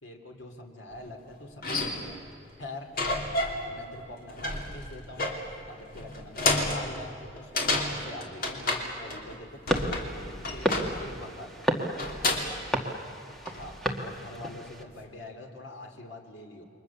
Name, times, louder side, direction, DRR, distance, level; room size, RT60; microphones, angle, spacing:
voice 1, 0.0-2.2 2.6-2.9 3.7-5.3 5.7-11.5 13.5-16.7, left 2 dB, 75° left, 3 dB, 2.9 m, -44 dB
sound 1, 1.1-1.2 1.6-2.3 3.0-3.7 4.0-9.4 9.7-11.1 12.0-12.6 13.3-13.8, left 2 dB, 50° left, 3.1 m, -31 dB
sound 2, 9.7-14.8, equal, ahead, 1.8 m, -32 dB
29.0 x 23.5 x 7.1 m, 2.7 s
head